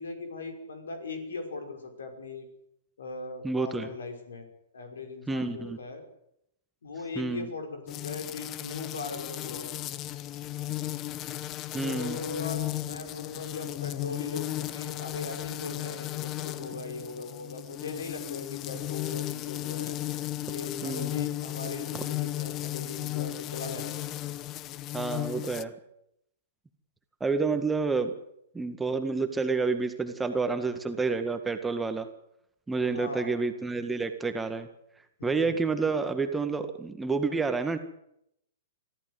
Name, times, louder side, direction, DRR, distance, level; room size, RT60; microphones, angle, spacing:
voice 1, 0.0-2.5 3.0-4.5 4.7-6.0 6.8-9.8 11.8-20.0 20.5-24.1 32.9-33.4 35.2-35.6, left 3 dB, 70° left, 5 dB, 5.7 m, -39 dB
voice 2, 3.4-3.9 5.3-5.8 7.2-7.5 11.7-12.2 20.8-21.1 21.9-22.0 24.9-25.7 27.2-28.1 28.5-32.1 32.7-34.7 35.2-37.8, right 4 dB, 10° right, 7 dB, 1.8 m, -29 dB
sound 1, 7.9-25.6, left 15 dB, 30° left, 1.0 m, -35 dB
24.0 x 15.0 x 8.1 m, 0.78 s
figure-of-eight pair, 115°, 0 cm